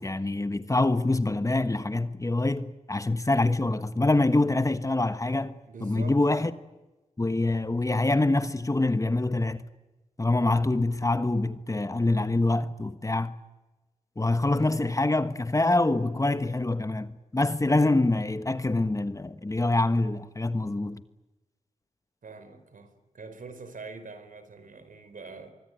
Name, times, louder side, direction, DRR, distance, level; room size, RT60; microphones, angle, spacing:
voice 1, 0.0-5.5 5.8-6.5 7.2-9.6 10.2-13.3 14.2-21.0, left 2 dB, 25° left, 1.3 m, -25 dB
voice 2, 5.7-6.5 22.2-25.5, right 4 dB, 75° right, 4.2 m, -44 dB
24.5 x 24.0 x 9.3 m
wide cardioid pair, 85°, 14 cm